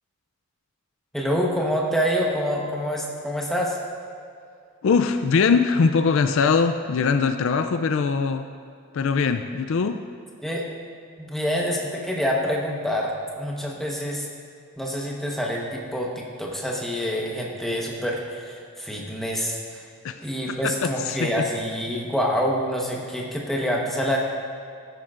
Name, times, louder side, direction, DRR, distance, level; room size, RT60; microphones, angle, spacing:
voice 1, 1.1-3.8 10.4-10.7 11.2-14.3 14.8-19.9 20.2-24.2, equal, ahead, -2 dB, 1.0 m, -26 dB
voice 2, 4.8-8.5 8.9-10.0 20.0-20.2 20.5-21.3, left 5 dB, 60° left, 9 dB, 0.3 m, -22 dB
13.5 x 10.5 x 2.5 m, 2.3 s
head